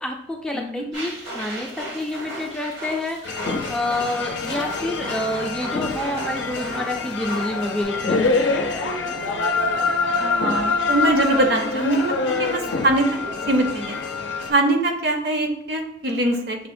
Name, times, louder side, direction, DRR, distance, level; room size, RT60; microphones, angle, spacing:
voice 1, 0.0-8.7, left 1 dB, 5° left, 1 dB, 0.3 m, -28 dB
voice 2, 0.5-0.8 10.2-13.2 13.5-14.0 14.5-16.7, right 1 dB, 60° right, 3 dB, 0.6 m, -22 dB
sound 1, 0.9-7.8, right 1 dB, 80° right, 1.2 m, -36 dB
sound 2, 3.2-14.5, left 3 dB, 85° left, 0.5 m, -25 dB
6.2 x 2.1 x 2.5 m, 0.71 s
head